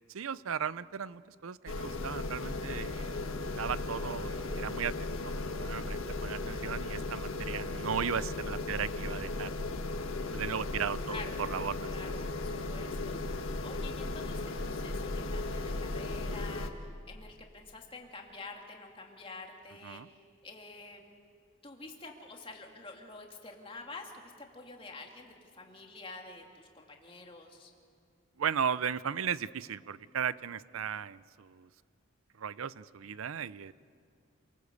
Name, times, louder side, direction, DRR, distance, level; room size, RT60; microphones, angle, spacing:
voice 1, 0.1-3.1 3.4-9.5 10.3-11.2 11.5-12.1 19.8-20.1 28.4-31.7 32.4-33.7, right 7 dB, 85° right, 18 dB, 0.6 m, -36 dB
sound 1, 1.7-16.7, left 2 dB, 80° left, 1.5 m, -36 dB
voice 2, 11.1-11.4 11.9-13.1 13.6-20.0 20.4-21.0 21.6-27.7, left 3 dB, 25° left, 2 dB, 2.4 m, -48 dB
28.0 x 19.5 x 8.2 m, 2.3 s
head